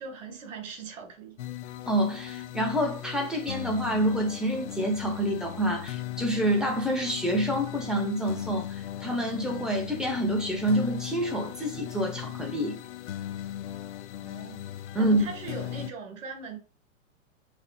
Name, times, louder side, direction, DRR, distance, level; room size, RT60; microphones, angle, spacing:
voice 1, 0.0-1.4 14.2-14.6 15.0-16.6, right 5 dB, 65° right, 1.7 m, -40 dB
sound 1, 1.4-15.9, left 12 dB, 60° left, 0.6 m, -38 dB
voice 2, 1.9-12.8 14.9-15.3, equal, ahead, 1.0 m, -27 dB
5.8 x 3.2 x 2.3 m
hypercardioid pair, 110°, 41 cm